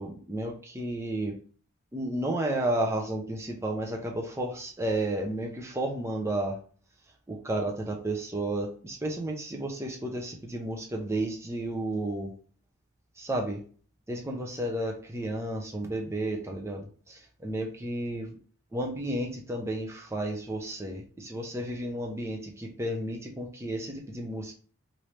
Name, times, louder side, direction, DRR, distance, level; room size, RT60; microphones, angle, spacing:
voice 1, 0.0-1.3 1.9-6.6 7.3-12.3 13.2-13.6 14.1-18.4 18.7-24.5, right 1 dB, 10° right, 1 dB, 0.4 m, -32 dB
3.1 x 2.6 x 3.1 m, 0.43 s
head